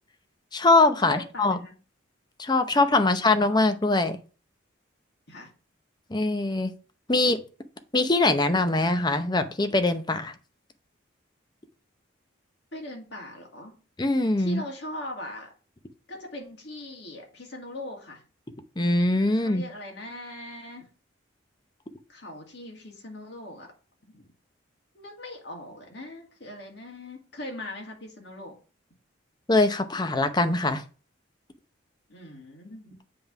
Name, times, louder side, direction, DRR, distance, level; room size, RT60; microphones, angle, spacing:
voice 1, 0.5-1.6 2.4-4.2 6.1-6.7 7.1-7.4 7.9-10.3 14.0-14.6 18.8-19.6 29.5-30.8, left 2 dB, 20° left, 9 dB, 0.6 m, -22 dB
voice 2, 1.0-1.7 2.7-3.3 5.3-5.5 7.2-7.3 12.7-13.7 14.4-15.5 16.1-18.2 19.3-20.9 22.1-23.7 24.1-24.2 24.9-28.6 32.1-33.0, left 1 dB, 60° left, 1 dB, 2.1 m, -40 dB
7.7 x 3.5 x 5.8 m, 0.36 s
head